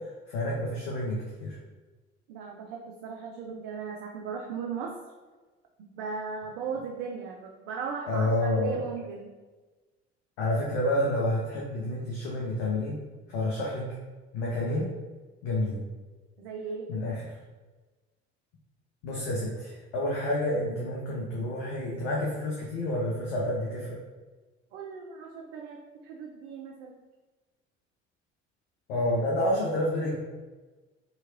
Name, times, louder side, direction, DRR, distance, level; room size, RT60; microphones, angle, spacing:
voice 1, 0.3-1.6 8.1-8.9 10.4-12.9 13.3-13.8 14.3-14.9 15.4-15.8 16.9-17.2 19.0-24.0 28.9-30.2, left 1 dB, 60° left, -4 dB, 0.7 m, -29 dB
voice 2, 2.3-4.9 5.9-9.3 16.4-16.9 24.7-27.0, right 5 dB, 60° right, 1 dB, 0.4 m, -37 dB
2.8 x 2.7 x 2.5 m, 1.3 s
figure-of-eight pair, 50°, 34 cm